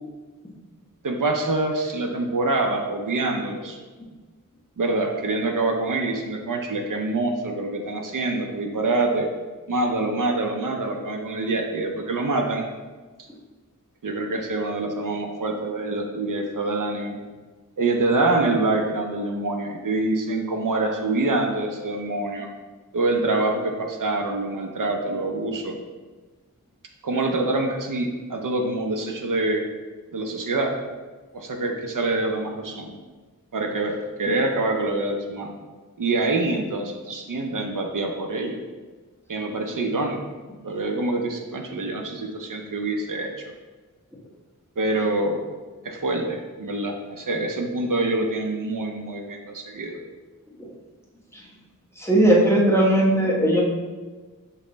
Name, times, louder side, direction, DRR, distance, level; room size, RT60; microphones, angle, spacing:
voice 1, 1.0-3.8 4.8-9.3 9.7-12.7 14.0-17.2 17.8-22.5 22.9-25.7 27.0-29.6 30.1-30.7 31.3-32.9 33.5-35.5 36.0-38.6 39.3-40.2 40.6-43.4 44.8-45.5 45.8-50.0, right 2 dB, 70° right, 2 dB, 0.5 m, -25 dB
voice 2, 52.0-53.6, right 1 dB, 10° left, -4 dB, 0.9 m, -18 dB
5.2 x 2.1 x 3.9 m, 1.3 s
wide cardioid pair, 45°, 33 cm